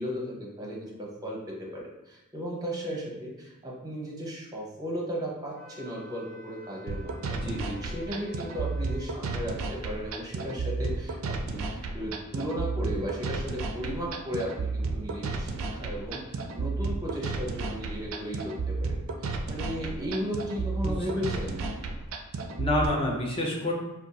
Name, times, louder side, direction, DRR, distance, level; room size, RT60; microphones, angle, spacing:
voice 1, 0.0-18.9 19.5-21.7, equal, 15° right, -2 dB, 0.7 m, -35 dB
Wind instrument woodwind instrument, 5.5-9.5, equal, 70° left, 1.0 m, -50 dB
sound 1, 6.9-22.9, right 3 dB, 65° right, 0.3 m, -32 dB
voice 2, 7.3-7.8 20.8-21.0 21.3-21.4 22.6-23.7, left 1 dB, 25° left, 0 dB, 0.5 m, -28 dB
2.5 x 2.3 x 4.0 m, 1.0 s
head